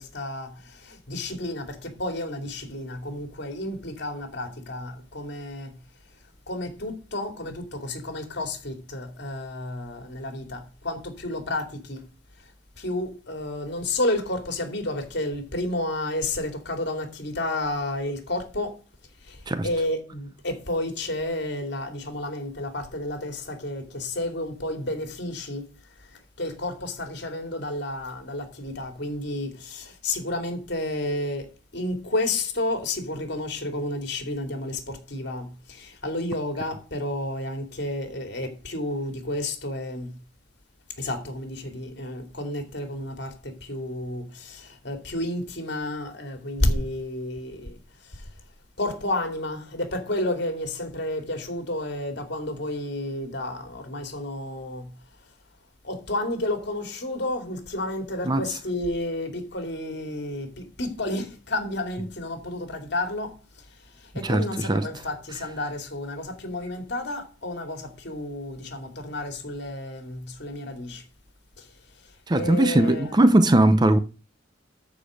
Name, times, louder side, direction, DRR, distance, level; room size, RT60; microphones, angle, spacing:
voice 1, 0.0-5.8 6.5-12.0 12.8-18.8 19.2-25.7 26.4-31.5 31.7-40.2 41.0-48.3 48.8-54.9 55.8-63.4 64.0-71.0 71.6-71.7 72.3-73.2, left 1 dB, 60° left, 2.7 m, -31 dB
voice 2, 64.2-64.9 72.3-74.0, right 1 dB, 20° right, 0.6 m, -19 dB
13.5 x 5.0 x 6.4 m
head